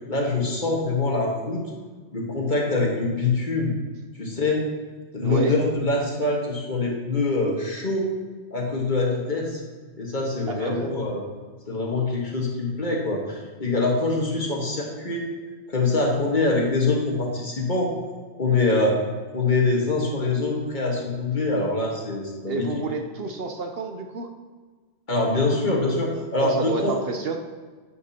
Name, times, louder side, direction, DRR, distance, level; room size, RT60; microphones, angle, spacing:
voice 1, 0.1-1.6 2.1-3.7 4.2-4.7 5.1-8.1 8.5-9.6 10.0-11.2 11.7-15.2 15.7-18.0 18.4-19.0 19.3-22.7 25.1-26.9, left 3 dB, 40° left, -1 dB, 1.6 m, -24 dB
voice 2, 5.2-5.5 10.5-10.9 22.5-24.3 26.4-27.4, right 4 dB, 60° right, 4 dB, 0.8 m, -29 dB
9.8 x 7.7 x 2.8 m, 1.4 s
omnidirectional pair, 1.2 m